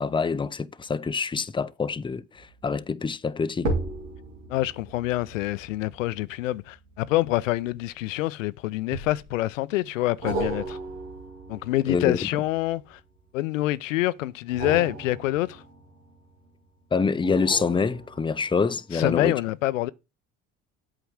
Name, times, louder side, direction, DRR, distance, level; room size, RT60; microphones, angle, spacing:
voice 1, 0.0-3.7 11.9-12.2 16.9-19.3, left 5 dB, 15° left, 0.6 m, -26 dB
sound 1, 2.3-2.7 3.5-8.2 8.9-9.5 10.2-13.2 14.4-16.5 17.2-18.6 19.1-19.2, right 2 dB, 90° right, 2.3 m, -36 dB
voice 2, 4.5-10.8 11.5-13.0 13.3-15.6 18.9-19.9, left 16 dB, 85° left, 0.6 m, -26 dB
8.3 x 4.9 x 6.3 m
hypercardioid pair, 60°, 38 cm